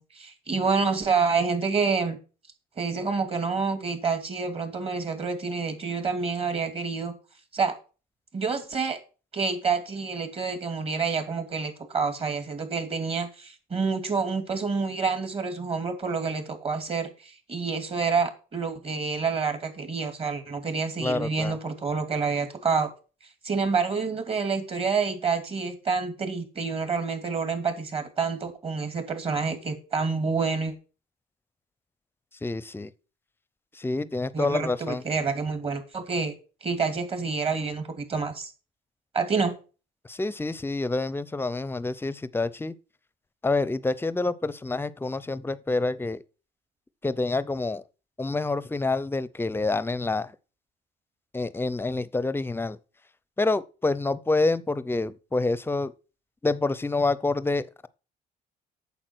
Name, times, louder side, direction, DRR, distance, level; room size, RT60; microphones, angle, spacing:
voice 1, 0.0-2.2 2.8-7.1 7.5-7.7 8.3-9.0 9.3-22.9 23.4-30.7 34.3-36.3 36.6-38.5 39.1-39.5, right 5 dB, 35° right, 2.6 m, -28 dB
voice 2, 21.0-21.6 32.4-32.9 33.7-35.0 40.1-42.7 43.4-46.2 47.0-47.8 48.2-50.3 51.3-52.8 53.4-55.9 56.4-57.9, left 3 dB, 15° left, 0.6 m, -27 dB
8.9 x 7.2 x 6.2 m
cardioid pair, 110°, 17 cm